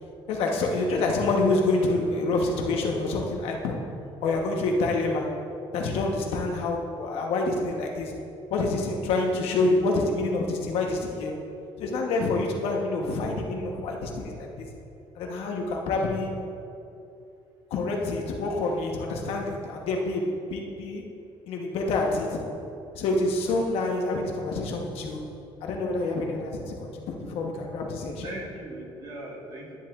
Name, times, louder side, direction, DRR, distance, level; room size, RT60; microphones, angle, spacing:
voice 1, 0.3-3.9 4.2-5.3 5.7-8.1 8.5-11.4 11.8-14.7 15.2-16.3 17.7-21.0 21.5-22.5 22.9-25.2 25.6-28.3, left 2 dB, 75° left, 1 dB, 1.1 m, -27 dB
voice 2, 4.3-4.7 28.0-29.8, right 1 dB, 40° right, -3 dB, 1.7 m, -40 dB
10.5 x 10.0 x 2.5 m, 2.7 s
cardioid pair, 165°, 10 cm